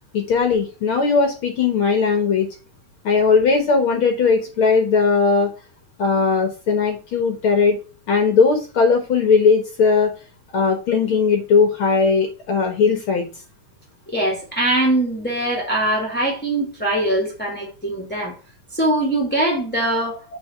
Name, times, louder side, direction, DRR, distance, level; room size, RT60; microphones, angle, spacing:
voice 1, 0.1-2.5 3.0-5.5 6.0-10.1 10.5-13.3, left 5 dB, 65° left, 1.3 m, -18 dB
voice 2, 14.1-18.3 18.7-20.2, right 1 dB, 10° left, 0.4 m, -22 dB
7.7 x 3.7 x 5.8 m
omnidirectional pair, 3.9 m